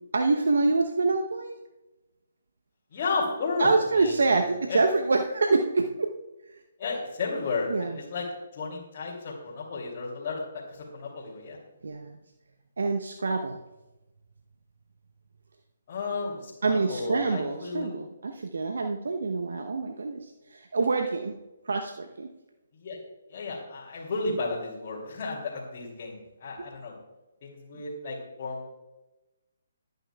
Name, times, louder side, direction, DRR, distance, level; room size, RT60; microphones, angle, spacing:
voice 1, 0.1-1.6 3.6-6.1 6.5-6.6 7.7-8.0 11.8-12.2 12.8-13.6 16.6-21.4 21.6-22.3, right 3 dB, 65° right, 4 dB, 0.8 m, -26 dB
voice 2, 2.9-3.7 4.0-4.1 4.7-4.8 6.8-8.2 8.5-11.6 15.9-17.9 22.7-23.0 23.3-27.0 27.4-28.8, left 3 dB, 40° left, -6 dB, 2.7 m, -33 dB
21.5 x 9.2 x 2.3 m, 1.0 s
figure-of-eight pair, 140°, 0 cm